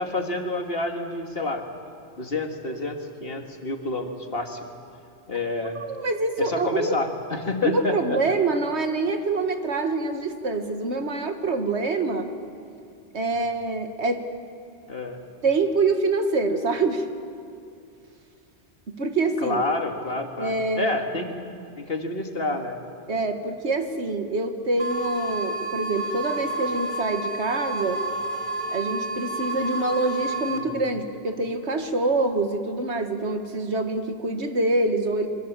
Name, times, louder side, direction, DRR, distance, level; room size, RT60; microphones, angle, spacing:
voice 1, 0.0-1.7 2.2-4.7 5.3-5.8 6.4-8.2 14.9-15.2 19.4-21.3 21.8-22.8 30.5-30.8, left 2 dB, 60° left, 4 dB, 2.2 m, -28 dB
voice 2, 5.8-7.0 7.6-12.3 13.1-14.2 15.4-17.1 18.9-19.6 20.4-20.9 23.1-28.1 28.7-35.3, right 3 dB, 80° right, 6 dB, 2.0 m, -25 dB
sound 1, 24.8-30.6, right 2 dB, 45° right, 2.3 m, -30 dB
26.5 x 24.0 x 7.4 m, 2.5 s
omnidirectional pair, 1.1 m